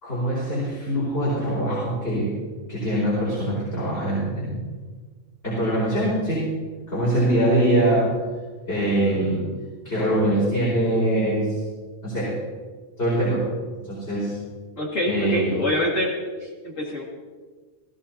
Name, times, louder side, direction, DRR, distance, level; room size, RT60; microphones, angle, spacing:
voice 1, 0.0-2.3 2.7-4.6 5.4-6.5 6.9-8.1 8.7-9.5 9.8-11.6 12.0-12.3 13.0-13.4 13.8-14.3 15.0-15.5, right 1 dB, 50° left, -9 dB, 5.1 m, -23 dB
voice 2, 14.8-16.1 16.6-17.0, left 1 dB, 80° left, -4 dB, 2.7 m, -25 dB
17.5 x 16.0 x 2.9 m, 1.4 s
omnidirectional pair, 1.3 m